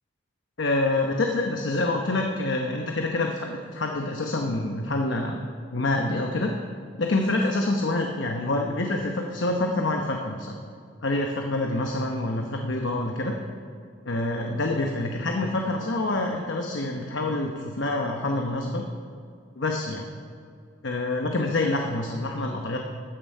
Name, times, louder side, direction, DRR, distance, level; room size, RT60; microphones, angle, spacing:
voice 1, 0.6-5.4 5.7-6.5 7.0-10.5 11.0-13.3 14.1-18.8 19.6-20.1 20.8-22.8, left 2 dB, 65° left, 2 dB, 1.0 m, -26 dB
13.5 x 9.4 x 5.5 m, 2.4 s
head